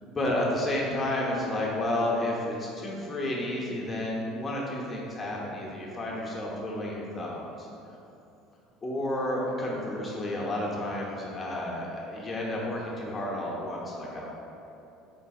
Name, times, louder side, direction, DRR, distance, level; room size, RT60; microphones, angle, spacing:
voice 1, 0.0-7.7 8.8-14.3, left 1 dB, 25° left, -4 dB, 0.8 m, -31 dB
3.8 x 3.2 x 2.7 m, 2.8 s
hypercardioid pair, 70°, 0 cm